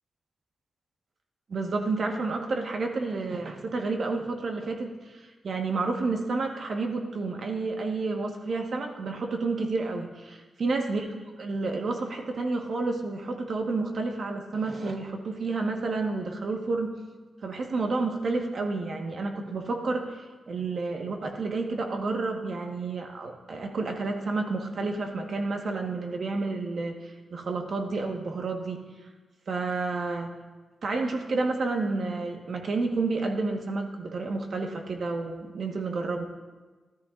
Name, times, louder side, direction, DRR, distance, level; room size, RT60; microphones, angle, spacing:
voice 1, 1.5-11.1 11.4-17.0 17.4-28.8 29.5-30.3 30.8-36.3, right 3 dB, 65° right, 3 dB, 1.4 m, -30 dB
13.5 x 13.0 x 2.6 m, 1.3 s
cardioid pair, 75°, 0 cm